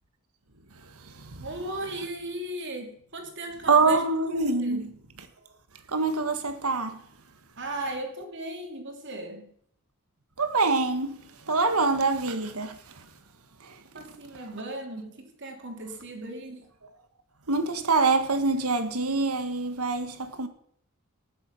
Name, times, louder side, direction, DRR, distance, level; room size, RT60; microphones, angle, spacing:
voice 1, 0.7-1.5 3.7-4.9 5.9-7.0 10.4-13.1 13.6-13.8 17.5-20.5, right 3 dB, 80° right, 1.7 m, -25 dB
voice 2, 1.4-4.0 4.6-4.9 7.6-9.5 13.9-16.7, right 1 dB, 55° right, 3.0 m, -36 dB
19.0 x 7.7 x 5.7 m
head